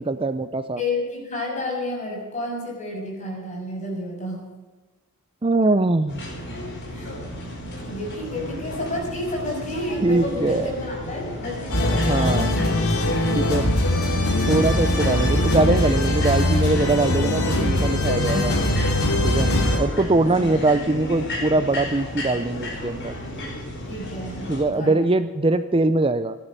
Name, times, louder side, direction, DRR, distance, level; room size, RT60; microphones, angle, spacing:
voice 1, 0.0-0.8 5.4-6.2 10.0-10.7 12.1-12.5 13.3-13.7 14.5-18.5 19.2-19.5 19.8-23.1 24.5-26.4, right 2 dB, 25° right, 11 dB, 0.5 m, -22 dB
voice 2, 0.8-4.4 6.9-7.1 7.8-13.8 20.2-20.5 23.9-25.1, left 1 dB, 35° left, -1 dB, 6.8 m, -31 dB
sound 1, 6.1-24.6, left 1 dB, 50° left, 5.2 m, -33 dB
sound 2, 11.7-19.8, left 1 dB, 80° left, 3.1 m, -21 dB
16.5 x 12.0 x 6.7 m, 1.3 s
head